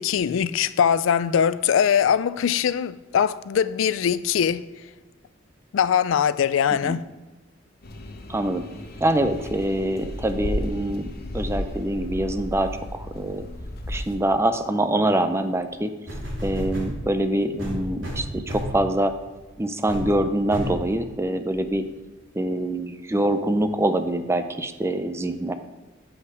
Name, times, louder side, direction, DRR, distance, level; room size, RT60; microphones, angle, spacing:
voice 1, 0.0-4.6 5.7-7.0, left 8 dB, 75° left, 0.3 m, -22 dB
sound 1, 7.8-14.2, left 1 dB, 50° left, 0.8 m, -34 dB
voice 2, 8.3-8.6 9.0-13.5 13.9-15.9 16.4-19.1 19.6-21.9 22.3-25.5, right 1 dB, 15° right, 0.5 m, -24 dB
sound 2, 16.1-17.0 17.6-18.8 19.3-19.5 19.9-20.1 20.5-20.8 21.5-21.6, equal, 75° right, 2.9 m, -31 dB
8.1 x 5.6 x 4.8 m
head